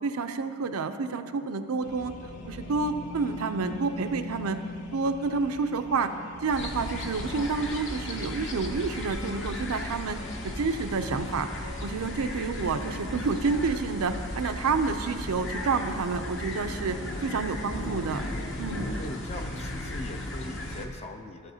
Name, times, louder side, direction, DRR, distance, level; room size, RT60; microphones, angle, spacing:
voice 1, 0.0-2.1 2.5-4.6 4.9-6.1 6.4-10.2 10.4-11.5 11.8-18.2 18.6-18.9, right 4 dB, 80° right, 9 dB, 0.5 m, -29 dB
sound 1, 1.8-12.3, left 2 dB, 90° left, 0.7 m, -44 dB
sound 2, 6.5-20.9, left 1 dB, 55° left, 0.9 m, -35 dB
voice 2, 19.0-21.5, left 2 dB, 30° left, 5 dB, 0.4 m, -40 dB
14.5 x 7.4 x 2.8 m, 2.3 s
head